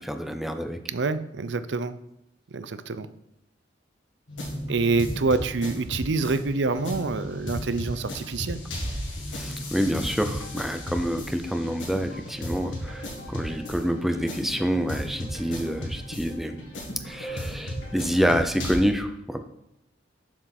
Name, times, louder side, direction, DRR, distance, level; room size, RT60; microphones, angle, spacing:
voice 1, 0.0-0.8 9.3-16.6 17.1-19.4, equal, ahead, 7 dB, 0.5 m, -27 dB
voice 2, 0.9-2.0 2.5-3.1 4.7-8.6, right 3 dB, 65° right, 13 dB, 0.5 m, -26 dB
sound 1, 4.3-18.8, equal, 85° left, 2.1 m, -35 dB
7.2 x 6.9 x 4.3 m, 0.84 s
head